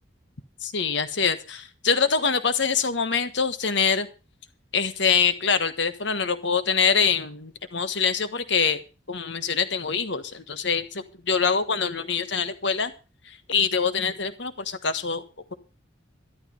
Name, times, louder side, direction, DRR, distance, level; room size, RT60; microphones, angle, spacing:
voice 1, 0.6-4.1 4.7-8.8 9.1-12.9 13.3-15.2, left 6 dB, 60° left, 12 dB, 1.4 m, -24 dB
13.0 x 11.5 x 5.4 m, 0.32 s
head